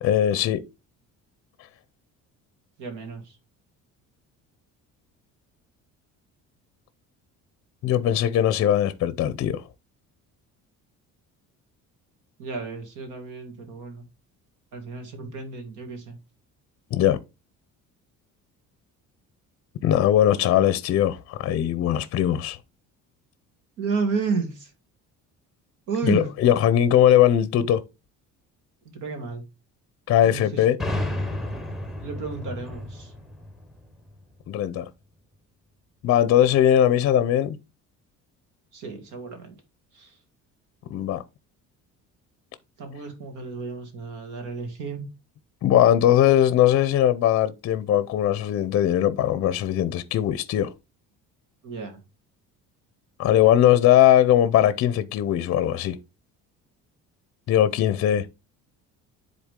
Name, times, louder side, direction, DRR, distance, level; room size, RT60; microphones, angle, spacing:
voice 1, 0.0-0.6 7.8-9.6 16.9-17.2 19.8-22.6 26.0-27.8 30.1-30.8 34.5-34.9 36.0-37.6 40.9-41.2 45.6-50.7 53.2-56.0 57.5-58.3, left 11 dB, 45° left, 0.6 m, -20 dB
voice 2, 2.8-3.3 12.4-14.1 14.7-16.2 23.8-24.7 25.9-26.3 28.9-29.4 30.2-30.6 32.0-33.1 38.7-39.5 39.9-40.1 42.8-45.1 51.6-52.0, right 4 dB, 70° right, 2.6 m, -32 dB
sound 1, 30.8-34.5, left 1 dB, ahead, 0.9 m, -32 dB
10.0 x 4.0 x 3.7 m
cardioid pair, 165°, 31 cm